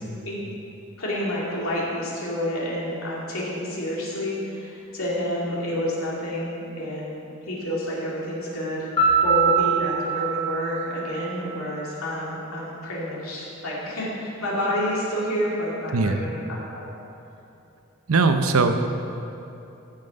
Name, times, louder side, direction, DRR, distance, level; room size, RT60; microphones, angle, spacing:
voice 1, 1.0-8.9 9.2-16.4 16.7-16.9, left 1 dB, 80° left, -6 dB, 2.6 m, -29 dB
Piano, 9.0-11.8, right 5 dB, 20° left, 2.2 m, -23 dB
voice 2, 18.1-18.8, right 3 dB, 85° right, 7 dB, 0.7 m, -20 dB
14.0 x 5.7 x 5.2 m, 2.9 s
head